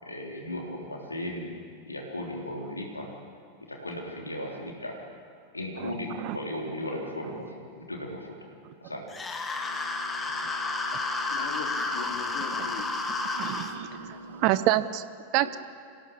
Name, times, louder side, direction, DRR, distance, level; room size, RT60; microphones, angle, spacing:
voice 1, 0.0-1.5 1.9-3.1 3.7-5.0 5.5-8.3 8.8-9.0, left 1 dB, 80° left, 0 dB, 3.5 m, -36 dB
sound 1, 9.1-13.7, left 3 dB, 15° left, 1.9 m, -31 dB
sound 2, 9.5-14.7, left 1 dB, 85° right, 3.2 m, -47 dB
voice 2, 11.3-13.0 15.4-15.6, left 8 dB, 55° left, 4 dB, 2.5 m, -40 dB
voice 3, 13.4-15.0 15.3-15.6, right 15 dB, 45° right, 14 dB, 0.7 m, -27 dB
26.0 x 17.0 x 7.2 m, 2.3 s
figure-of-eight pair, 90°, 0 cm